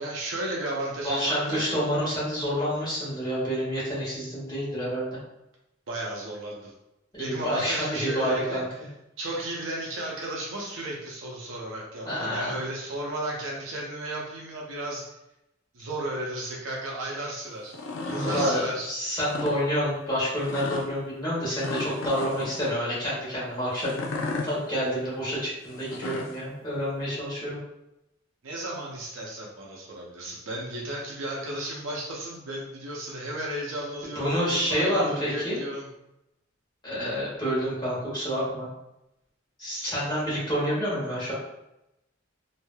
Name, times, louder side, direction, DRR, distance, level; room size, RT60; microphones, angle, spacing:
voice 1, 0.0-1.6 5.9-6.7 7.2-8.6 9.2-15.0 15.7-17.7 18.1-18.9 28.4-35.9, right 1 dB, 75° right, -3 dB, 0.6 m, -34 dB
voice 2, 1.0-5.1 7.1-8.7 12.0-12.6 18.1-24.0 24.4-27.6 34.1-35.6 36.8-38.7 39.6-41.3, equal, 20° left, -8 dB, 1.4 m, -28 dB
sound 1, 17.7-18.6 19.2-19.6 20.4-20.9 21.6-22.6 23.8-24.5 25.7-26.4, left 3 dB, 65° left, 0.4 m, -33 dB
3.2 x 2.6 x 2.2 m, 0.88 s
head